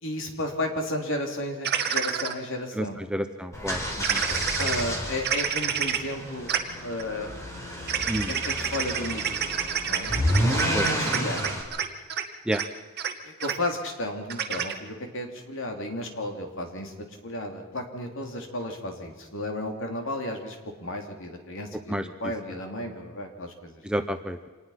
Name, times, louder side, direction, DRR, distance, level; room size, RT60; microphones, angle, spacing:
voice 1, 0.0-3.0 4.6-6.5 6.8-7.4 8.3-9.4 9.9-10.1 10.8-11.6 13.2-23.8, left 1 dB, 60° left, 3 dB, 3.4 m, -33 dB
sound 1, 1.6-2.3 4.0-4.8 5.2-6.0 6.5-6.6 6.9-7.0 7.9-11.8 12.1-12.2 12.5-12.6 13.0-13.1 13.4-13.5 14.3-14.7, right 8 dB, 50° right, 1.7 m, -28 dB
voice 2, 2.7-3.8 4.1-4.2 8.1-8.3 10.7-11.3 12.5-12.6 21.9-22.1 22.5-22.6 23.8-24.5, right 1 dB, 5° right, 8 dB, 0.8 m, -30 dB
sound 2, 3.5-11.6, equal, 15° left, 4.2 m, -30 dB
26.5 x 19.5 x 5.9 m, 1.4 s
head